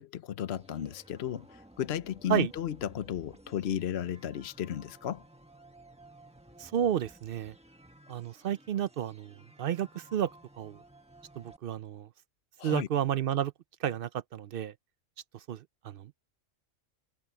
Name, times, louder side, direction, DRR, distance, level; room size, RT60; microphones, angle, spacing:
voice 1, 0.0-5.2 12.6-12.9, left 10 dB, 60° left, 0.9 m, -34 dB
sound 1, 0.5-11.6, right 1 dB, 5° right, 1.5 m, -56 dB
voice 2, 6.6-7.5 8.1-10.3 10.6-10.8 11.4-12.1 12.6-13.5 13.8-14.7 15.3-16.1, right 10 dB, 60° right, 0.6 m, -31 dB
omnidirectional pair, 1.4 m